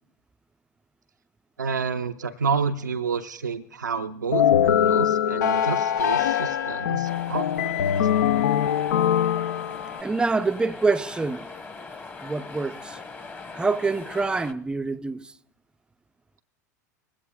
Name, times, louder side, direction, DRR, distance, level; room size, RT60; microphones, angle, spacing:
voice 1, 1.6-7.8, right 5 dB, 90° right, 0.4 m, -29 dB
sound 1, 4.3-10.0, left 9 dB, 75° left, 0.4 m, -22 dB
sound 2, 7.0-14.5, left 4 dB, 20° left, 1.1 m, -41 dB
voice 2, 10.0-11.5 12.2-13.0 13.5-15.3, right 3 dB, 10° right, 0.4 m, -26 dB
21.0 x 16.0 x 2.2 m
hypercardioid pair, 90°, 10 cm